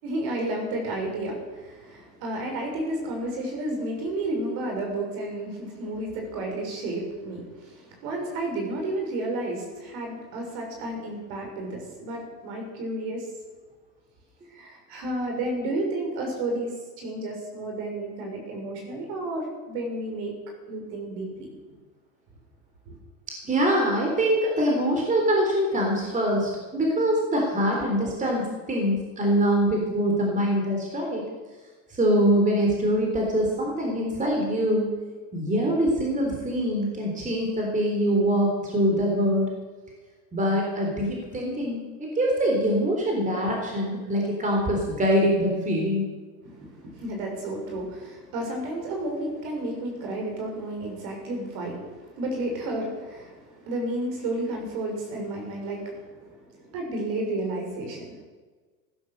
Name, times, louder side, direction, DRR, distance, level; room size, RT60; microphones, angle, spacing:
voice 1, 0.0-13.3 14.5-20.3 20.7-21.5 22.9-23.0 46.4-58.2, right 1 dB, 50° right, 2 dB, 6.4 m, -32 dB
voice 2, 23.4-31.2 31.9-34.9 35.3-39.5 40.3-46.0, equal, 15° right, 0 dB, 3.7 m, -24 dB
15.5 x 11.5 x 6.8 m, 1.4 s
hypercardioid pair, 120°, 50 cm